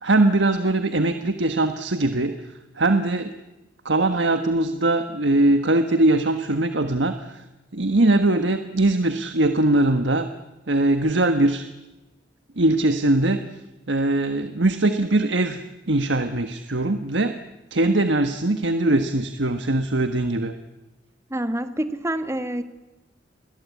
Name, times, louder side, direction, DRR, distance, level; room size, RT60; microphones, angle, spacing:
voice 1, 0.0-2.5 2.8-3.3 3.8-7.4 7.7-10.3 10.7-11.7 12.6-13.4 13.9-17.4 17.7-20.6, right 2 dB, 70° right, 8 dB, 1.5 m, -21 dB
voice 2, 21.3-22.6, right 1 dB, 15° right, 10 dB, 1.6 m, -27 dB
29.5 x 22.0 x 8.6 m, 1.1 s
head